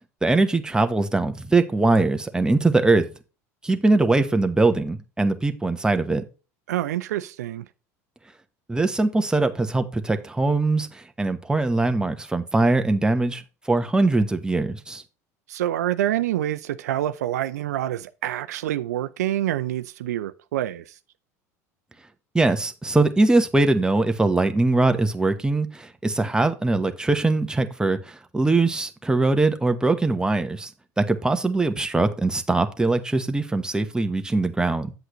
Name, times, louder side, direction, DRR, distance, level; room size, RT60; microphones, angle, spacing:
voice 1, 0.2-3.0 3.6-6.2 8.7-13.4 13.7-15.0 22.3-30.7 31.0-34.9, right 2 dB, 10° right, 1.1 m, -22 dB
voice 2, 6.7-7.6 15.5-20.9, right 13 dB, 80° right, 0.5 m, -27 dB
8.1 x 7.9 x 3.0 m
hypercardioid pair, 80°, 9 cm